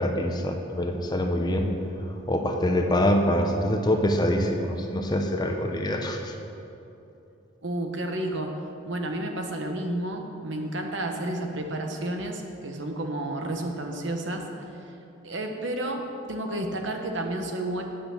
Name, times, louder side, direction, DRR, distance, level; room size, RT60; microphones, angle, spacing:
voice 1, 0.0-1.7 2.3-6.3, left 1 dB, 20° left, 4 dB, 0.8 m, -25 dB
voice 2, 7.6-14.5 15.2-17.8, right 1 dB, 70° right, 3 dB, 1.1 m, -31 dB
8.7 x 8.0 x 7.1 m, 2.8 s
head